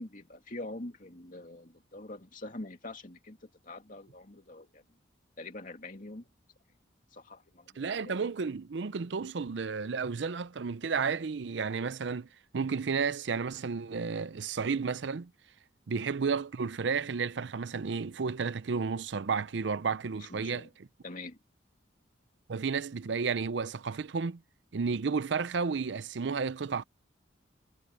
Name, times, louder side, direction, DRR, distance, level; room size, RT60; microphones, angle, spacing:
voice 1, 0.0-4.8 5.4-6.3 7.1-8.2 20.3-20.7 21.0-21.4, left 2 dB, 45° left, 2.7 m, -44 dB
voice 2, 7.8-12.3 12.5-15.3 15.9-20.7 22.5-24.4 24.7-26.8, right 5 dB, 70° right, 0.5 m, -32 dB
head